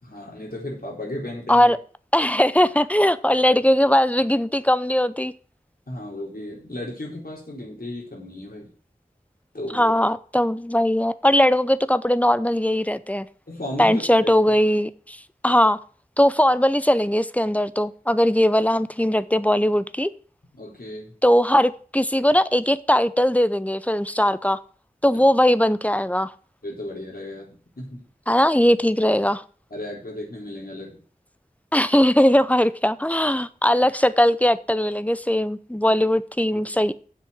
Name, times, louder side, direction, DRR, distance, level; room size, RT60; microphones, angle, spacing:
voice 1, 0.0-1.7 5.9-8.7 9.5-9.9 13.5-14.3 20.5-21.1 25.1-25.2 26.6-28.0 29.7-31.0 36.5-36.6, left 1 dB, 90° left, -3 dB, 4.2 m, -35 dB
voice 2, 2.1-5.3 9.7-13.3 13.8-15.2 15.4-15.8 16.2-20.1 21.2-24.6 25.0-26.3 28.3-29.4 31.7-36.9, left 1 dB, 10° left, 15 dB, 0.7 m, -19 dB
7.7 x 6.3 x 8.0 m, 0.42 s
wide cardioid pair, 45°, 15 cm